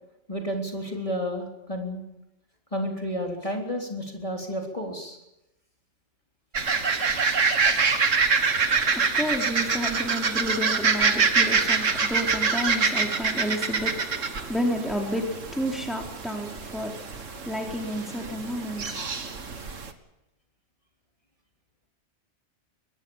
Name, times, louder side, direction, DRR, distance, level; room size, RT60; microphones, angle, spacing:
voice 1, 0.3-2.0 2.7-5.2, equal, 25° left, 3.5 m, -31 dB
sound 1, 6.5-19.9, right 5 dB, 80° right, 2.1 m, -25 dB
voice 2, 8.4-19.5, equal, ahead, 3.6 m, -31 dB
24.0 x 20.0 x 7.2 m
omnidirectional pair, 1.3 m